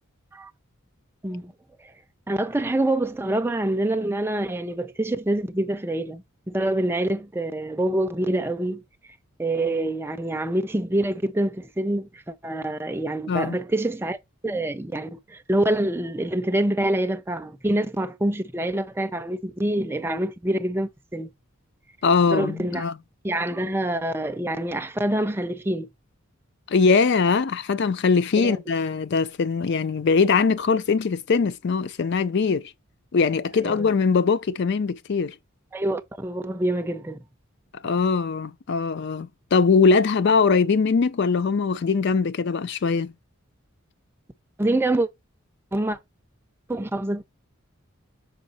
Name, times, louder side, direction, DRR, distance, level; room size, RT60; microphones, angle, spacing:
voice 1, 2.3-8.8 9.4-14.2 14.4-21.3 22.3-22.8 23.2-25.9 28.4-28.6 33.6-33.9 35.7-37.2 44.6-45.1 45.7-46.0 46.7-47.2, right 1 dB, 10° right, 0.4 m, -26 dB
voice 2, 22.0-22.9 26.7-32.7 33.1-35.3 37.8-43.1, left 5 dB, 50° left, 0.4 m, -21 dB
6.2 x 3.8 x 4.0 m
head